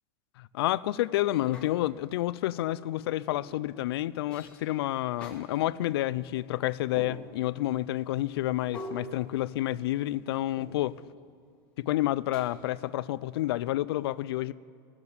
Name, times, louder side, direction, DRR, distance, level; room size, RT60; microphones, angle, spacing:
voice 1, 0.4-11.0 11.8-14.5, left 15 dB, 85° left, 0.4 m, -29 dB
sound 1, 1.5-2.1 3.3-3.6 4.3-4.7 5.2-5.4 7.0-7.6 8.7-10.0 10.6-11.1 12.3-12.9, left 1 dB, 10° left, 1.5 m, -44 dB
18.0 x 7.3 x 8.1 m
supercardioid pair, 180°, 13 cm